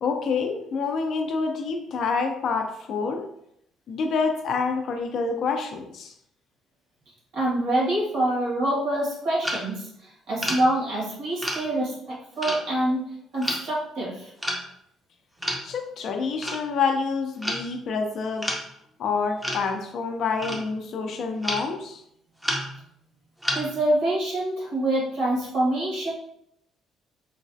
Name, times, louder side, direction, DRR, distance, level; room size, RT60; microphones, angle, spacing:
voice 1, 0.0-3.2 3.9-6.1 15.6-18.5 19.0-22.0, left 5 dB, 55° left, 5 dB, 0.4 m, -27 dB
voice 2, 7.3-13.0 13.3-14.3 23.5-26.1, right 1 dB, 70° right, -5 dB, 1.4 m, -26 dB
sound 1, 9.4-9.6 10.4-10.7 11.4-11.7 12.4-12.6 13.4-13.6 14.4-14.6 15.4-15.6 16.4-16.6 17.4-17.7 18.4-18.6 19.4-19.7 20.4-20.8 21.4-21.7 22.4-22.9 23.4-23.8, equal, 5° right, 0.5 m, -29 dB
3.1 x 2.3 x 2.5 m, 0.74 s
cardioid pair, 140°, 0 cm